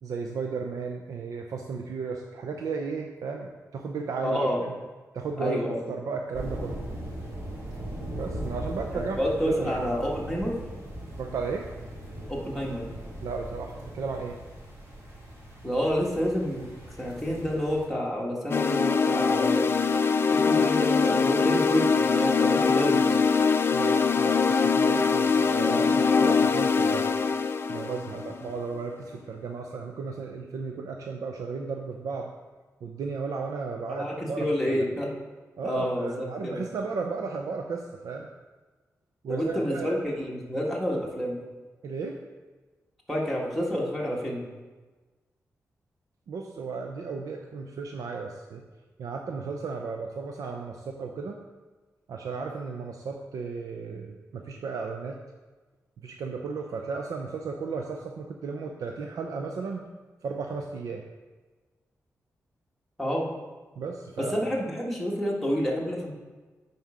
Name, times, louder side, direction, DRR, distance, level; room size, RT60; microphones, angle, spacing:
voice 1, 0.0-4.7 5.1-6.8 8.1-9.2 9.5-9.9 11.2-11.7 13.2-14.4 23.7-27.1 27.7-32.3 32.8-34.5 35.6-38.3 39.2-39.9 41.8-42.2 46.3-48.6 49.0-51.4 52.1-55.2 56.0-59.9 60.2-61.0 63.8-64.5, right 4 dB, 80° right, 2 dB, 0.6 m, -34 dB
voice 2, 4.2-4.6 5.4-5.8 8.9-10.6 12.3-12.8 15.6-16.7 17.0-19.7 20.3-23.2 25.6-26.0 33.9-35.1 35.6-36.6 39.3-41.4 43.1-44.4 63.0-63.3 64.2-66.1, equal, ahead, -4 dB, 1.7 m, -29 dB
sound 1, 6.3-17.9, right 1 dB, 50° right, 2.7 m, -39 dB
sound 2, 18.5-28.6, left 5 dB, 40° left, 0.4 m, -23 dB
9.4 x 4.3 x 4.9 m, 1.3 s
wide cardioid pair, 105°, 6 cm